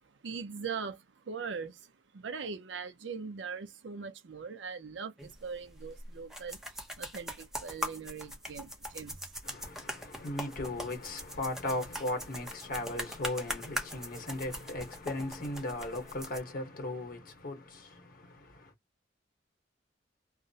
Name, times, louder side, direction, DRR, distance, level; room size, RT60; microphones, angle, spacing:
voice 1, 0.2-9.2, right 5 dB, 75° right, 0.5 m, -41 dB
sound 1, 5.2-16.4, equal, 5° right, 0.6 m, -41 dB
voice 2, 9.4-18.7, left 1 dB, 50° left, 0.9 m, -37 dB
2.3 x 2.0 x 2.6 m
head